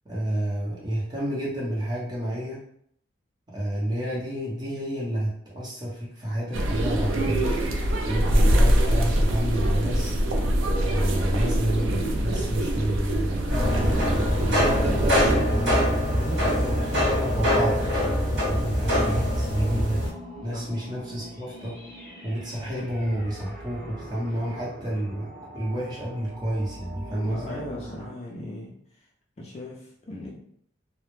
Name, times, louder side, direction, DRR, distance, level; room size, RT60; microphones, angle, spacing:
voice 1, 0.0-2.6 3.5-7.4 8.0-10.1 10.9-14.1 14.4-17.9 18.5-20.0 20.4-21.8 22.2-25.3 25.5-27.6, right 1 dB, 20° right, -5 dB, 0.6 m, -30 dB
sound 1, 6.5-15.4, equal, 90° right, 0.4 m, -24 dB
sound 2, 13.5-20.1, equal, 70° right, 1.0 m, -23 dB
sound 3, 19.1-28.1, equal, 15° left, 0.9 m, -42 dB
voice 2, 27.2-28.7 29.4-30.4, left 1 dB, 35° left, -3 dB, 0.3 m, -38 dB
2.1 x 2.0 x 3.0 m, 0.66 s
head